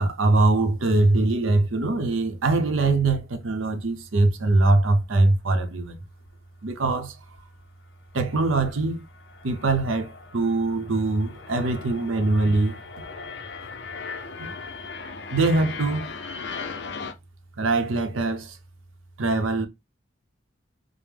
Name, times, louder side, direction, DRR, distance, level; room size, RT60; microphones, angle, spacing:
voice 1, 0.0-6.0 6.6-7.1 8.1-9.0 9.4-12.8 14.4-14.5 15.3-16.1 17.6-18.6 19.2-19.7, right 2 dB, 85° right, 0.7 m, -22 dB
sound 1, 5.0-5.1 5.7-6.0 6.2-6.3 7.0-7.1 7.4-7.7 8.0-17.1, left 5 dB, 60° left, 0.6 m, -38 dB
5.1 x 2.0 x 3.3 m
head